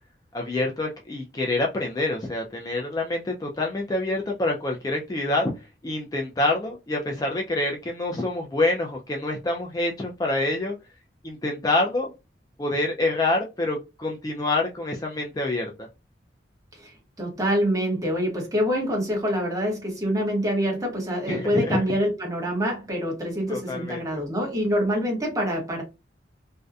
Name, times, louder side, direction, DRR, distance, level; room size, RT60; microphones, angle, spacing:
voice 1, 0.3-5.5 5.8-10.8 11.2-12.1 12.6-15.9 21.3-21.8 23.5-24.2, left 2 dB, 20° left, 0.3 m, -26 dB
voice 2, 17.2-25.8, equal, 20° right, 0.9 m, -26 dB
2.6 x 2.1 x 2.3 m
head